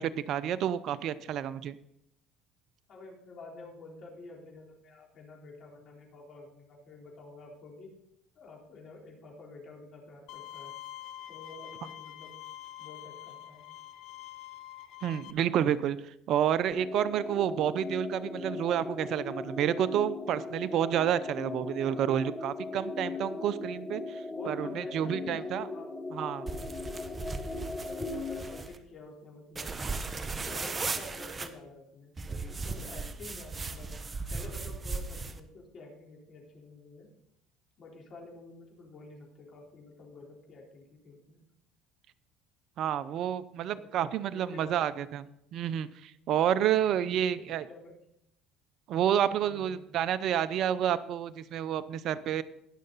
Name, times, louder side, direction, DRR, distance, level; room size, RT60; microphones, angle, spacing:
voice 1, 0.0-1.8 15.0-25.6 26.1-26.5 42.8-45.3 45.5-47.6 48.9-52.4, right 10 dB, 60° right, 16 dB, 0.6 m, -29 dB
voice 2, 2.9-7.9 8.3-10.8 11.3-12.3 12.8-13.7 23.1-23.2 24.3-25.9 27.8-29.8 30.4-32.1 32.5-33.9 34.3-37.1 37.8-41.4 43.7-45.1 46.6-46.7 47.1-47.9 49.4-49.8, left 3 dB, 50° left, -1 dB, 3.9 m, -49 dB
Bowed string instrument, 10.3-15.3, left 13 dB, 65° left, 0.7 m, -45 dB
sound 1, 16.7-28.6, left 3 dB, 20° left, 1.5 m, -38 dB
sound 2, 26.5-28.8 29.5-31.5 32.2-35.4, right 3 dB, 25° right, 1.1 m, -37 dB
19.5 x 6.6 x 4.0 m, 0.78 s
supercardioid pair, 80°, 0 cm